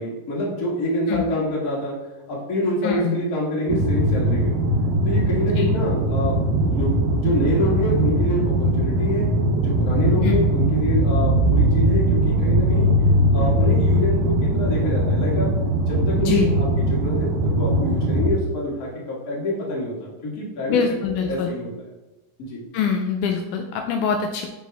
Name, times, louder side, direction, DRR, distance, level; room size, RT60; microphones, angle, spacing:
voice 1, 0.0-1.9 2.3-4.6 5.0-6.3 6.7-9.3 9.6-12.9 13.3-15.5 15.9-20.8 21.3-21.7 22.4-22.6, left 1 dB, 35° left, -5 dB, 1.6 m, -26 dB
voice 2, 2.8-3.2 5.6-5.7 10.2-10.5 16.2-16.5 20.7-21.5 22.7-24.5, left 6 dB, 80° left, 3 dB, 2.0 m, -24 dB
sound 1, 3.7-18.3, right 1 dB, 80° right, 2.3 m, -20 dB
10.0 x 3.4 x 3.4 m, 1.1 s
omnidirectional pair, 3.7 m